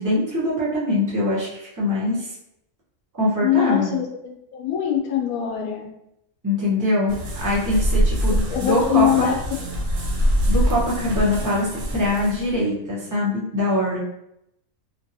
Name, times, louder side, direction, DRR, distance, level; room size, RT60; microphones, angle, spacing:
voice 1, 0.0-2.3 3.2-3.9 6.4-9.3 10.4-14.0, left 1 dB, 15° right, -7 dB, 0.8 m, -23 dB
voice 2, 3.4-5.9 8.3-9.4, left 11 dB, 80° left, 1 dB, 1.0 m, -23 dB
sound 1, 7.1-12.6, equal, 65° right, 1.0 m, -24 dB
2.8 x 2.7 x 2.7 m, 0.80 s
omnidirectional pair, 1.5 m